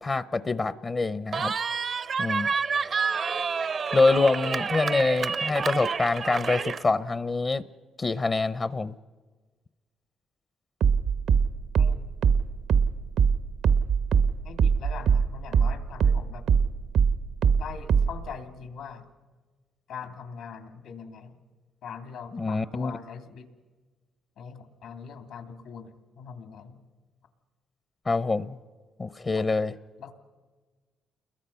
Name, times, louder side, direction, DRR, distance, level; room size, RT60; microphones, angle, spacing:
voice 1, 0.0-1.5 2.2-2.5 3.9-7.6 8.0-8.9 22.3-22.9 28.1-28.6 29.0-29.7, left 3 dB, 30° left, 15 dB, 0.7 m, -25 dB
Cheering, 1.3-6.8, right 5 dB, 45° right, 0.7 m, -29 dB
sound 1, 10.8-15.8 16.0-18.3, right 6 dB, 75° right, 0.9 m, -21 dB
voice 2, 11.8-12.1 14.4-16.4 17.6-19.1 19.9-21.4 21.8-23.5 24.4-26.8 29.4-29.5 30.0-30.1, left 6 dB, 80° left, 7 dB, 2.7 m, -42 dB
29.0 x 21.5 x 5.7 m, 1.3 s
cardioid pair, 90°, 0 cm